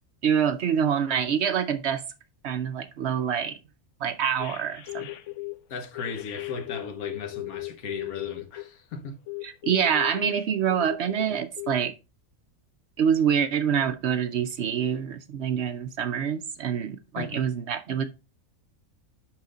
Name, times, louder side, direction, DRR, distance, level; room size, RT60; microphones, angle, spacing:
voice 1, 0.2-2.0 2.4-3.6 4.0-5.1 9.4-11.9 13.0-18.1, right 8 dB, 60° right, 0.8 m, -26 dB
sound 1, 4.4-5.6 6.0-8.7 9.3-11.3 11.6-11.8, left 20 dB, 65° left, 0.9 m, -37 dB
voice 2, 5.7-9.2 17.2-17.4, left 5 dB, 90° left, 1.5 m, -36 dB
5.9 x 5.6 x 3.8 m
omnidirectional pair, 1.5 m